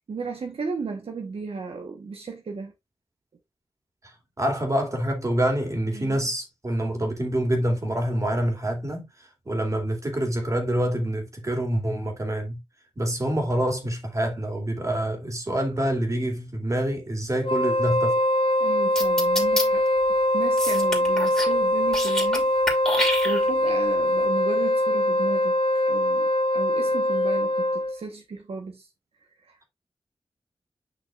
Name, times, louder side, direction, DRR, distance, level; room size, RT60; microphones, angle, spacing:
voice 1, 0.1-2.7 5.9-6.2 18.6-19.9 20.3-22.5 23.2-25.6 25.9-28.9 29.4-29.6, right 4 dB, 85° right, 1.1 m, -34 dB
voice 2, 4.4-9.1 9.5-12.6 13.0-18.2, right 1 dB, 35° right, 2.5 m, -26 dB
Wind instrument woodwind instrument, 17.4-28.0, left 1 dB, 65° left, 0.9 m, -23 dB
sound 1, 19.0-19.6 20.6-21.5 21.8-22.4 22.7-23.7, left 1 dB, 5° left, 2.7 m, -27 dB
9.0 x 5.9 x 2.4 m
wide cardioid pair, 100°, 10 cm